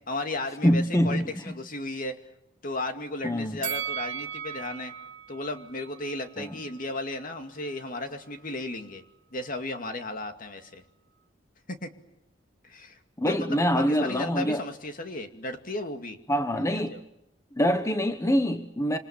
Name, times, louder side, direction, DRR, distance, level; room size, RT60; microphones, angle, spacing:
voice 1, 0.1-2.1 2.6-4.9 5.3-9.0 9.3-10.8 11.7-11.9 12.6-13.0 13.3-13.5 13.7-16.2 16.5-17.0, left 2 dB, 50° left, 2.4 m, -34 dB
voice 2, 0.6-1.3 3.2-3.6 6.4-6.6 13.2-14.6 16.3-17.0 17.5-19.0, equal, 15° left, 1.1 m, -25 dB
Bell, 3.6-6.8 7.2-7.3, right 9 dB, 80° right, 0.9 m, -37 dB
27.5 x 26.5 x 7.3 m
head